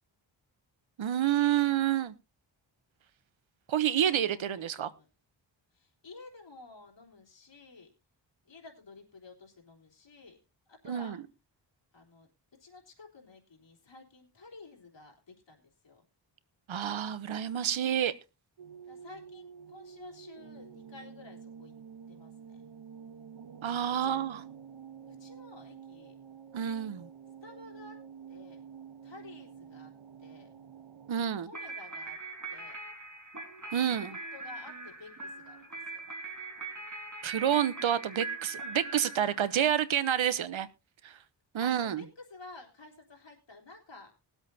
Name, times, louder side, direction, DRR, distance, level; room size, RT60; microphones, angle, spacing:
voice 1, 1.0-2.1 3.7-4.9 10.9-11.2 16.7-18.1 23.6-24.4 26.5-27.1 31.1-31.5 33.7-34.2 37.2-40.7 41.0-41.2 41.5-42.0, right 10 dB, 85° right, 16 dB, 0.9 m, -29 dB
voice 2, 4.3-5.1 5.7-7.9 8.4-10.4 10.7-11.2 11.9-12.3 12.6-16.0 18.9-21.7 22.1-22.6 23.8-24.2 25.1-26.2 27.4-28.0 28.3-28.6 29.0-29.9 30.2-30.5 31.4-32.2 32.5-32.8 33.9-36.1 41.6-44.1, left 3 dB, 70° left, 0 dB, 3.4 m, -52 dB
sound 1, 18.6-31.1, right 7 dB, 70° right, 1.1 m, -49 dB
sound 2, 31.5-39.8, right 3 dB, 40° right, 4.2 m, -42 dB
21.5 x 8.0 x 2.7 m, 0.28 s
wide cardioid pair, 70°, 46 cm